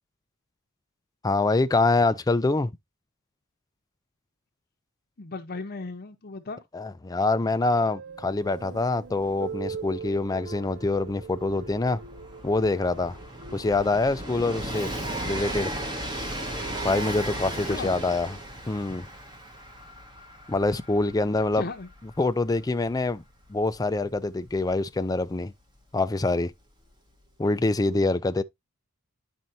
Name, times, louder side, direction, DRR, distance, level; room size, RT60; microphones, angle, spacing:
voice 1, 1.2-2.7 6.7-12.0 12.4-13.2 13.5-14.9 15.2-15.7 16.8-18.3 18.7-19.1 20.5-21.6 22.2-23.2 23.5-25.5 25.9-26.5 27.4-28.4, left 2 dB, 15° left, 0.4 m, -25 dB
voice 2, 5.2-6.6 17.6-18.0 21.2-21.9, left 3 dB, 45° left, 0.8 m, -37 dB
sound 1, 7.4-13.9, right 5 dB, 50° right, 0.5 m, -41 dB
Train, 8.4-8.5 8.7-25.3 26.3-26.4, right 1 dB, 20° right, 1.3 m, -37 dB
11.0 x 4.4 x 2.6 m
head